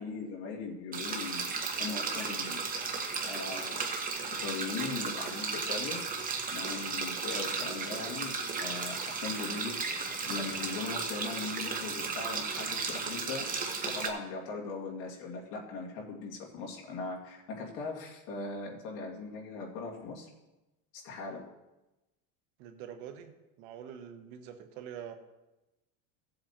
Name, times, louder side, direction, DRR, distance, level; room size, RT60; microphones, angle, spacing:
voice 1, 0.0-1.5 1.8-2.6 3.2-3.8 4.3-6.0 6.5-13.5 13.9-20.3 20.9-21.4, left 4 dB, 55° left, -1 dB, 2.3 m, -39 dB
sound 1, 0.9-14.1, right 4 dB, 20° right, 1.0 m, -35 dB
voice 2, 22.6-25.1, right 9 dB, 60° right, 7 dB, 1.1 m, -45 dB
16.5 x 7.8 x 2.9 m, 1.0 s
cardioid pair, 150°, 45 cm